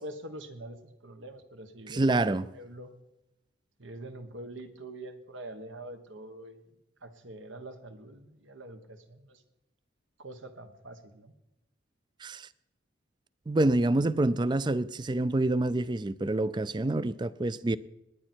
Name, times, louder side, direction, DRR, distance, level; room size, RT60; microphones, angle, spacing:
voice 1, 0.0-2.9 3.8-6.7 7.0-9.4 10.2-11.3, right 1 dB, 80° right, 1.4 m, -45 dB
voice 2, 1.9-2.4 12.2-12.5 13.5-17.8, right 2 dB, 25° right, 0.4 m, -27 dB
20.5 x 9.5 x 4.5 m
head